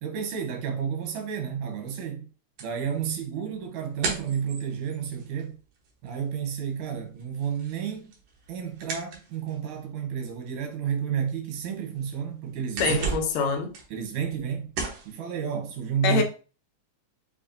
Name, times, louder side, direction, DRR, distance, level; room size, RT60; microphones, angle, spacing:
voice 1, 0.0-2.3 2.6-5.6 6.0-8.1 8.5-13.0 13.9-14.7 15.1-16.2, right 7 dB, 90° right, 2.4 m, -31 dB
sound 1, 2.6-6.3 6.6-9.8 10.5-10.6 11.1-11.2 11.6-12.1 12.4-14.5 14.7-15.1, right 4 dB, 65° right, 2.1 m, -35 dB
voice 2, 12.8-13.7 16.0-16.2, left 6 dB, 75° left, 1.9 m, -25 dB
7.0 x 2.5 x 2.6 m
omnidirectional pair, 3.3 m